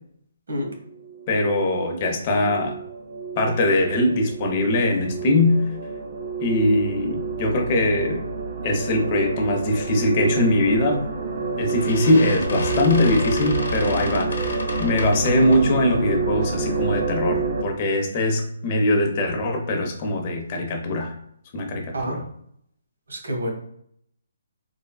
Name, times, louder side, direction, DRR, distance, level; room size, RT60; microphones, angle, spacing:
sound 1, 0.9-17.6, right 4 dB, 50° right, 0.4 m, -29 dB
voice 1, 1.3-2.7 3.4-5.6 6.4-8.2 8.6-11.0 11.6-21.1 21.5-22.2, left 1 dB, 30° left, 2 dB, 0.6 m, -22 dB
sound 2, 10.9-11.2 11.7-15.8, left 2 dB, 80° left, 0.7 m, -31 dB
voice 2, 23.1-23.5, equal, 80° right, 0 dB, 1.0 m, -28 dB
3.2 x 2.2 x 2.2 m, 0.70 s
hypercardioid pair, 160°, 0 cm